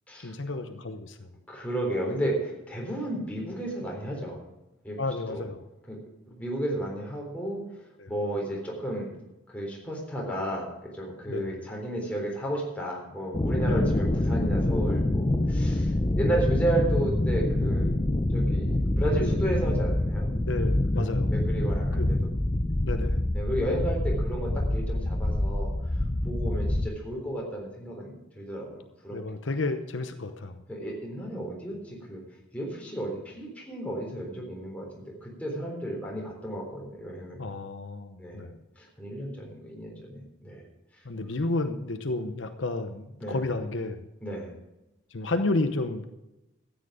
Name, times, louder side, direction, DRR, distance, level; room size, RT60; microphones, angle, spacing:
voice 1, 0.2-1.3 5.0-5.6 8.0-8.1 11.3-11.5 13.7-13.8 19.2-19.4 20.4-21.3 22.0-22.1 22.8-23.2 29.1-30.6 37.4-38.6 41.0-44.0 45.1-46.1, left 2 dB, 75° left, 7 dB, 0.9 m, -31 dB
voice 2, 1.5-4.4 4.8-5.0 5.3-5.4 5.9-6.0 6.3-7.6 8.1-9.1 9.5-10.7 10.9-18.0 18.3-20.3 21.0-22.3 23.3-25.7 26.2-29.2 30.7-32.2 32.5-37.4 38.2-38.5 38.8-40.6 40.9-41.0 43.2-43.5 44.2-44.5, right 1 dB, 5° left, -3 dB, 3.8 m, -33 dB
sound 1, 13.3-26.9, left 1 dB, 25° left, 0.7 m, -26 dB
13.5 x 9.3 x 5.0 m, 0.96 s
head